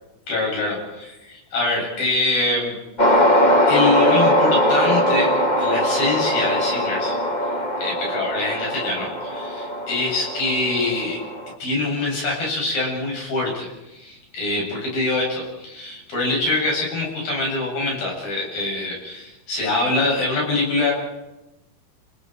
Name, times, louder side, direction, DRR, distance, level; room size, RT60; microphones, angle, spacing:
voice 1, 0.3-2.8 3.7-7.1 7.8-11.2 11.6-20.9, left 2 dB, 65° left, -2 dB, 9.4 m, -24 dB
sound 1, 3.0-11.5, equal, 25° left, 0.9 m, -20 dB
30.0 x 26.5 x 4.6 m, 1.0 s
omnidirectional pair, 4.5 m